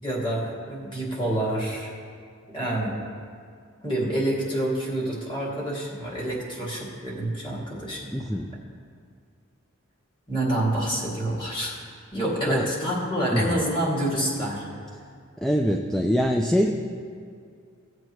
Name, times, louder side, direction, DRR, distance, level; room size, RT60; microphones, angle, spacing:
voice 1, 0.0-1.9 2.5-2.9 3.8-8.1 10.3-11.7 12.1-14.6, right 1 dB, 25° left, -4 dB, 2.4 m, -27 dB
voice 2, 8.1-8.5 12.5-12.7 13.3-13.4 15.4-16.7, equal, ahead, 2 dB, 0.4 m, -23 dB
17.0 x 7.7 x 3.1 m, 2.2 s
head